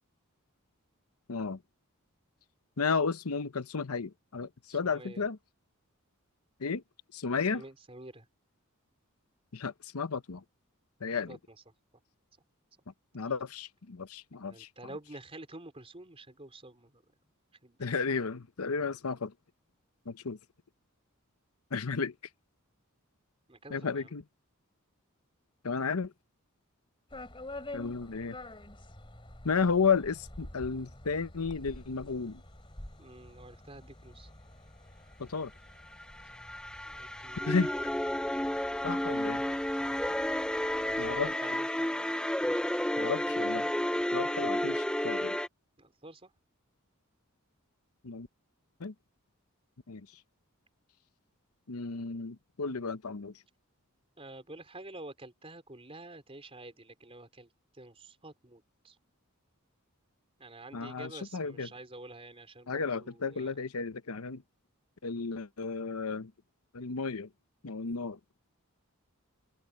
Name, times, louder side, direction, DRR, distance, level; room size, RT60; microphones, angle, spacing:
voice 1, 1.3-1.6 2.8-5.4 6.6-6.8 7.1-7.6 9.5-10.4 11.0-11.4 13.1-14.9 17.8-19.3 20.1-20.4 21.7-22.1 23.7-24.2 25.6-26.1 27.7-28.4 29.4-32.4 35.2-35.5 37.5-37.7 38.8-39.4 41.0-41.3 43.0-43.6 44.1-45.4 48.0-48.3 48.8-48.9 49.9-50.1 51.7-53.3 60.7-61.7 62.7-64.4 65.0-66.3 66.7-67.3 67.6-68.2, left 5 dB, 85° left, 0.9 m, -33 dB
voice 2, 4.7-5.2 7.5-8.3 11.3-11.6 14.4-17.0 17.6-17.8 23.5-24.1 33.0-34.3 36.9-37.6 39.0-40.4 40.8-42.0 45.8-46.3 54.2-57.5 57.7-59.0 60.4-63.6, right 2 dB, 25° right, 4.2 m, -49 dB
sound 1, 27.1-41.3, left 1 dB, 25° left, 3.4 m, -49 dB
sound 2, 35.9-45.5, left 1 dB, 5° left, 0.6 m, -31 dB
open air
head